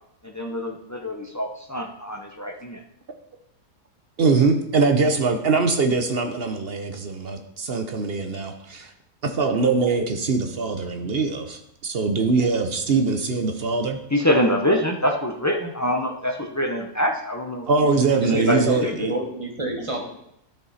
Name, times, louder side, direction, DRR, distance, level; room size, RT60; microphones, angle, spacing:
voice 1, 0.2-2.8 14.1-17.7 18.3-18.9, equal, 30° left, 2 dB, 0.3 m, -25 dB
voice 2, 4.2-8.9 9.2-14.0 17.7-19.1, right 4 dB, 50° right, 6 dB, 0.8 m, -22 dB
voice 3, 18.2-20.0, right 1 dB, 20° right, 1 dB, 1.4 m, -28 dB
12.5 x 5.3 x 4.2 m, 0.78 s
omnidirectional pair, 1.7 m